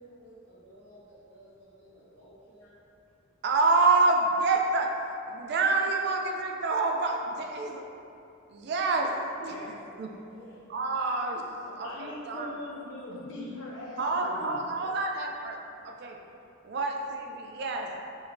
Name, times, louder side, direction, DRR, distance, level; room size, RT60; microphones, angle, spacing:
voice 1, 0.0-2.7 10.1-10.7 11.6-12.0 14.7-14.9, right 1 dB, 85° right, -12 dB, 0.9 m, -53 dB
voice 2, 3.4-4.9 5.3-7.9 8.5-9.5 10.0-10.1 10.7-11.5 11.8-12.5 14.0-15.6 15.8-16.2 16.6-17.9, right 3 dB, 50° right, 2 dB, 0.3 m, -27 dB
voice 3, 11.8-14.6, left 1 dB, 60° left, -5 dB, 0.6 m, -40 dB
4.8 x 2.1 x 2.6 m, 2.6 s
head